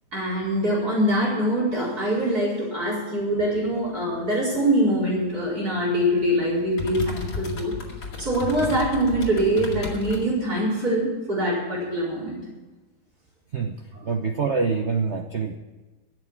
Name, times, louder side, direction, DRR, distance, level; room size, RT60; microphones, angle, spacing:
voice 1, 0.1-7.7 8.2-12.4 13.9-14.1, right 1 dB, 45° right, -5 dB, 5.2 m, -24 dB
sound 1, 3.9-10.3, left 3 dB, 50° left, 2.8 m, -35 dB
voice 2, 14.0-15.6, right 5 dB, 75° right, 5 dB, 0.6 m, -25 dB
13.5 x 8.2 x 8.7 m, 1.2 s
omnidirectional pair, 2.4 m